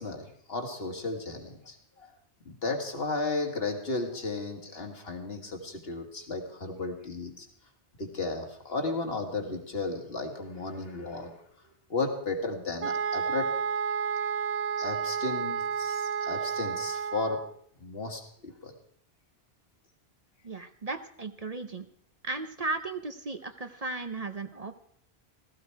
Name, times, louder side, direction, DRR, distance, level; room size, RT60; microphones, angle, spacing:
voice 1, 0.0-2.1 2.5-7.5 8.0-11.3 11.9-13.5 14.8-17.4 17.8-18.7, left 3 dB, 70° left, 3 dB, 2.2 m, -34 dB
sound 1, 12.8-17.5, right 6 dB, 85° right, 1.0 m, -31 dB
voice 2, 20.4-21.9 22.2-24.8, right 3 dB, 40° right, 8 dB, 0.8 m, -35 dB
16.0 x 14.5 x 4.6 m, 0.63 s
omnidirectional pair, 1.1 m